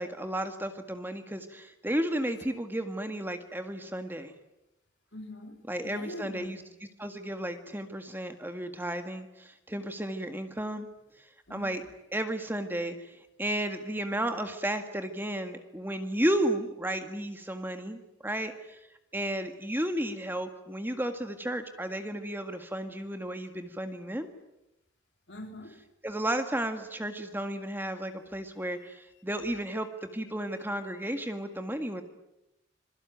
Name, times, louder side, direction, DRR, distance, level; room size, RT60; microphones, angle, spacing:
voice 1, 0.0-4.3 5.7-6.6 7.0-10.9 11.2-11.8 12.1-18.8 19.1-24.3 26.0-32.0, right 1 dB, 10° right, 1.8 m, -33 dB
voice 2, 5.1-6.7 11.5-11.9 25.3-25.8 29.5-29.8 30.5-30.6 31.2-31.3, left 1 dB, 60° left, 4.1 m, -45 dB
27.0 x 22.5 x 9.4 m
head